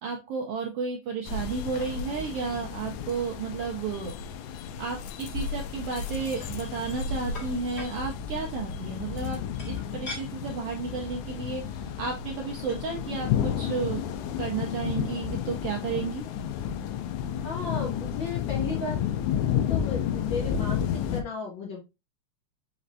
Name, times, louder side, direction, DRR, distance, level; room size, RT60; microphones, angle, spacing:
voice 1, 0.0-4.1 4.8-9.4 9.7-14.0 14.4-16.3, right 5 dB, 80° right, 1 dB, 1.4 m, -32 dB
sound 1, 1.3-21.2, left 8 dB, 85° left, 2.0 m, -32 dB
sound 2, 6.4-6.5 7.3-7.9 9.6-10.2 10.8-10.9 11.2-11.4 12.4-12.5 12.7-12.9, left 2 dB, 25° left, 1.6 m, -41 dB
voice 2, 17.4-19.0 19.7-21.8, left 4 dB, 70° left, -2 dB, 1.1 m, -34 dB
5.2 x 3.1 x 2.6 m, 0.25 s
omnidirectional pair, 3.4 m